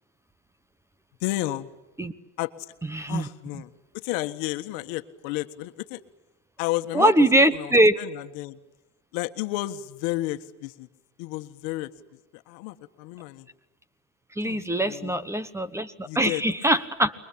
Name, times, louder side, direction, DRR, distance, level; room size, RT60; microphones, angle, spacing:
voice 1, 1.2-1.7 2.4-2.7 3.1-6.0 6.6-7.3 7.5-8.6 9.1-10.9 11.2-11.9 12.3-13.5 14.4-15.2 16.0-16.4, left 17 dB, 65° left, 9 dB, 1.6 m, -32 dB
voice 2, 2.9-3.3 6.9-8.0 14.4-17.1, right 1 dB, 10° right, 15 dB, 1.2 m, -22 dB
29.0 x 23.0 x 8.7 m, 0.99 s
supercardioid pair, 115°, 36 cm